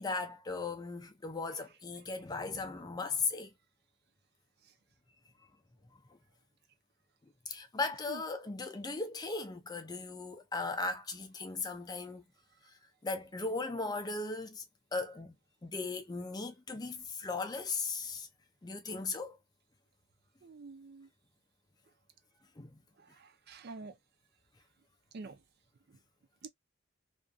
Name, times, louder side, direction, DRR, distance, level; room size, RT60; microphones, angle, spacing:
voice 1, 0.0-3.5 7.5-12.2 13.0-14.6 14.9-15.3 15.6-18.3 18.6-19.4 22.6-22.8, left 3 dB, 20° left, 0.4 m, -37 dB
voice 2, 20.4-21.1 23.0-24.0 25.1-25.4 25.9-26.0 26.4-26.5, right 4 dB, 50° right, 0.4 m, -47 dB
2.5 x 2.5 x 2.2 m
head